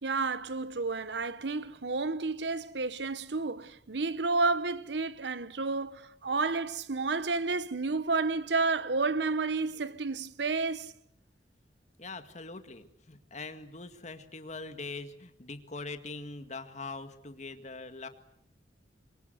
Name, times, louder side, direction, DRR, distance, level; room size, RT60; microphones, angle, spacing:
voice 1, 0.0-10.9, right 3 dB, 75° right, 1.0 m, -31 dB
voice 2, 12.0-18.1, left 3 dB, 40° left, 2.0 m, -42 dB
26.5 x 23.0 x 8.0 m
head